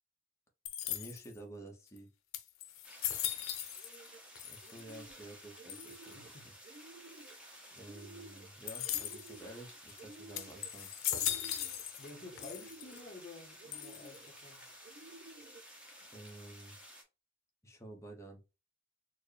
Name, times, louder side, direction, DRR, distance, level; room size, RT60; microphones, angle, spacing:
sound 1, 0.7-1.4 2.0-2.1 2.3-4.1 4.4-5.0 5.7-6.1 8.7-9.4 9.9-10.0 10.4-12.1 12.4-13.0 13.7-14.3, left 11 dB, 80° left, 0.6 m, -38 dB
voice 1, 0.8-2.1 4.4-6.5 7.7-10.9 16.1-16.8 17.6-18.4, right 1 dB, 15° left, 0.8 m, -51 dB
sound 2, 2.8-17.0, equal, 5° right, 1.0 m, -54 dB
sound 3, 3.8-4.2 4.6-5.3 5.6-6.3 6.6-7.4 7.8-8.5 8.8-9.6 10.0-10.7 11.1-11.8 12.3-13.1 13.6-14.3 14.8-15.6, right 3 dB, 40° right, 0.4 m, -54 dB
voice 2, 6.1-6.5 12.0-14.7, left 3 dB, 35° left, 1.1 m, -51 dB
4.4 x 2.2 x 3.2 m
head